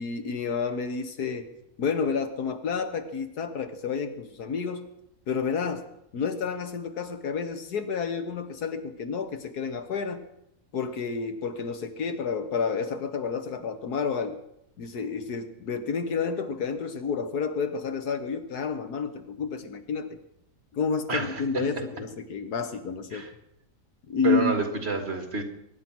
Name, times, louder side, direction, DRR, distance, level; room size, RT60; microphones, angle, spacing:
voice 1, 0.0-1.5 1.8-4.9 5.3-5.8 6.1-10.2 10.7-14.4 14.8-20.2 20.7-23.3 24.1-24.6, left 5 dB, 80° left, 8 dB, 1.8 m, -30 dB
voice 2, 21.1-21.4 23.1-23.3 24.2-25.4, right 3 dB, 40° right, 5 dB, 2.2 m, -28 dB
23.0 x 9.8 x 6.1 m, 0.80 s
omnidirectional pair, 1.7 m